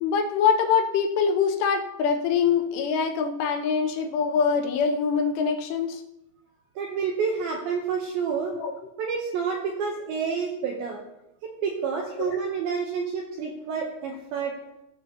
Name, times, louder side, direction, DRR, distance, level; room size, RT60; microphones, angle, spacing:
voice 1, 0.0-6.0 8.5-8.7 12.2-12.4, left 6 dB, 80° left, 6 dB, 2.6 m, -24 dB
voice 2, 6.8-8.6 9.0-11.0 11.4-14.6, right 6 dB, 80° right, 1 dB, 2.1 m, -29 dB
14.5 x 7.0 x 2.8 m, 0.89 s
omnidirectional pair, 5.1 m